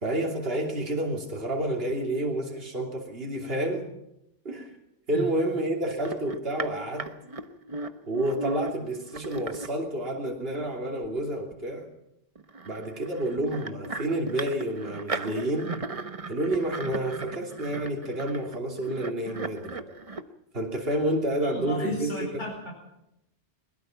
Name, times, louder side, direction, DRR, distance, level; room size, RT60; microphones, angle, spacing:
voice 1, 0.0-3.9 4.4-4.7 5.1-7.1 8.1-11.9 12.6-15.8 16.3-19.8 20.5-22.4, right 1 dB, 55° right, 0 dB, 3.3 m, -29 dB
sound 1, 6.0-9.7 11.0-11.1 11.5-11.6 12.4-20.2, right 3 dB, 30° right, 1.1 m, -37 dB
voice 2, 21.4-22.7, equal, 25° left, 0 dB, 4.6 m, -34 dB
21.5 x 21.5 x 5.8 m, 0.83 s
omnidirectional pair, 1.2 m